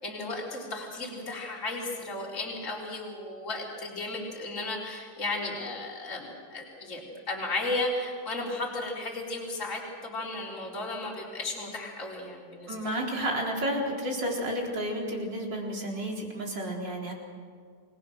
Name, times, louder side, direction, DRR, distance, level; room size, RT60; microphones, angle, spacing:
voice 1, 0.0-12.8, left 2 dB, 35° left, -3 dB, 4.3 m, -34 dB
voice 2, 12.7-17.1, equal, 55° right, -1 dB, 4.6 m, -31 dB
29.0 x 21.0 x 6.4 m, 2.1 s
omnidirectional pair, 2.4 m